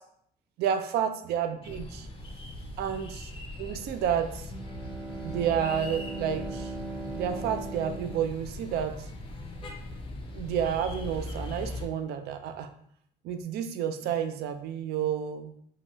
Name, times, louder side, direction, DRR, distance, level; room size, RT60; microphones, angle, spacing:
voice 1, 0.6-2.1 2.8-3.3 3.6-4.5 5.2-6.7 7.1-9.1 10.3-12.7 13.2-15.5, right 8 dB, 70° right, 7 dB, 0.4 m, -30 dB
sound 1, 1.6-11.9, left 1 dB, 30° left, 0.5 m, -40 dB
Bowed string instrument, 4.5-9.1, right 3 dB, 25° right, 0.8 m, -39 dB
2.8 x 2.2 x 2.9 m, 0.66 s
cardioid pair, 110°, 17 cm